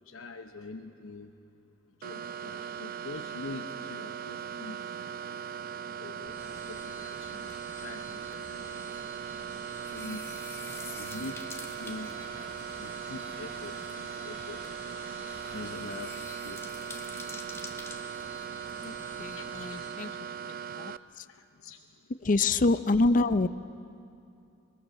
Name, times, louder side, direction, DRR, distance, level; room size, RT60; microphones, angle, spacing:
voice 1, 0.0-1.3 2.0-4.8 6.0-10.3 11.0-11.4 11.8-12.2 12.8-14.6 15.5-16.6 19.4-20.4 21.3-21.8, left 3 dB, 90° left, 4 dB, 0.9 m, -45 dB
sound 1, 2.0-21.0, right 8 dB, 45° right, 0.4 m, -39 dB
sound 2, 6.2-19.9, equal, 10° right, 5.4 m, -51 dB
sound 3, 6.3-19.8, left 3 dB, 15° left, 1.4 m, -49 dB
voice 2, 19.2-20.1 20.8-20.9 22.2-23.5, left 3 dB, 40° left, 13 dB, 0.5 m, -25 dB
21.5 x 21.0 x 6.5 m, 2.6 s
head